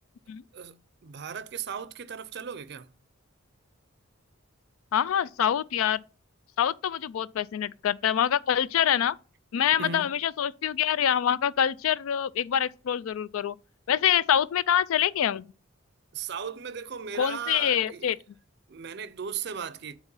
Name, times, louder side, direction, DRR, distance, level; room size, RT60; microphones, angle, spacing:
voice 1, 0.5-2.9 9.8-10.1 16.1-18.1 18.7-19.9, right 6 dB, 55° right, 0.5 m, -37 dB
voice 2, 4.9-6.0 6.6-9.2 9.5-13.6 13.9-15.4 17.2-18.2, left 9 dB, 85° left, 0.3 m, -25 dB
7.9 x 3.0 x 5.3 m
head